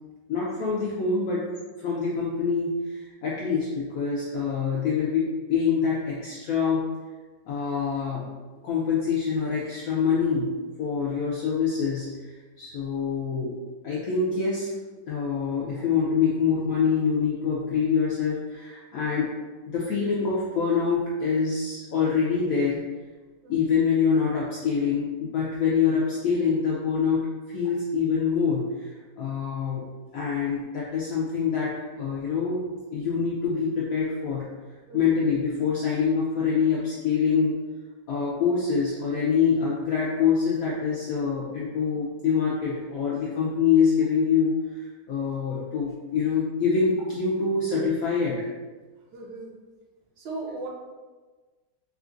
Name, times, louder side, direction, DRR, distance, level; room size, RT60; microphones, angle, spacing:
voice 1, 0.3-1.5 1.8-6.9 7.5-8.3 8.6-13.6 13.8-14.7 15.1-19.3 19.7-22.8 23.5-29.9 30.1-34.5 34.9-37.5 38.1-48.4, left 6 dB, 75° left, -6 dB, 0.8 m, -25 dB
voice 2, 23.4-23.8 34.9-35.2 49.1-49.5 50.2-50.7, right 2 dB, 80° right, -1 dB, 1.3 m, -38 dB
3.7 x 2.3 x 2.4 m, 1.3 s
omnidirectional pair, 2.0 m